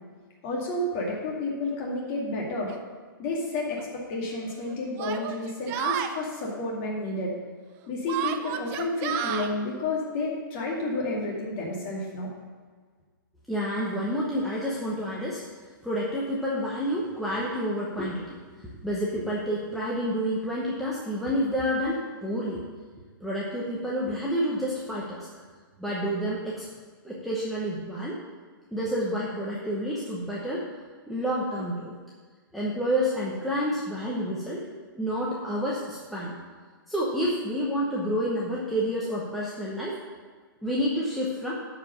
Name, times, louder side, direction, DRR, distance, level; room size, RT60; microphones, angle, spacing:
voice 1, 0.4-2.7 3.2-7.3 7.9-12.3, left 2 dB, 30° left, -3 dB, 2.3 m, -30 dB
Yell, 2.7-2.8 3.7-3.8 5.0-6.1 8.1-9.5, right 9 dB, 20° right, 0.4 m, -31 dB
voice 2, 13.5-15.4 15.8-18.4 18.8-22.6 23.2-25.3 25.8-26.6 27.0-28.2 28.7-30.6 31.1-31.9 32.5-34.6 34.9-36.4 36.9-40.0 40.6-41.5, equal, ahead, -7 dB, 0.9 m, -29 dB
12.0 x 5.0 x 5.5 m, 1.5 s
hypercardioid pair, 160°, 12 cm